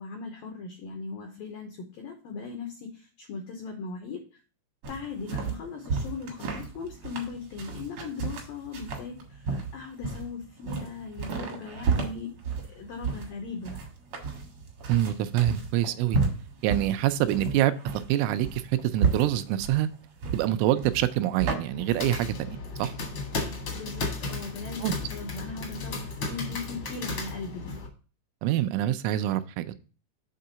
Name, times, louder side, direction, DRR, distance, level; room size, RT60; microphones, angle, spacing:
voice 1, 0.0-4.2 4.9-13.9 23.7-27.8, left 4 dB, 85° left, 2.0 m, -39 dB
sound 1, 4.8-21.6, right 5 dB, 70° right, 1.6 m, -32 dB
voice 2, 14.9-16.2 16.6-19.9 20.3-22.9 24.8-24.9 28.4-29.8, right 13 dB, 90° right, 3.1 m, -26 dB
sound 2, 21.6-27.9, left 3 dB, 70° left, 1.3 m, -34 dB
7.7 x 3.7 x 5.5 m
omnidirectional pair, 5.5 m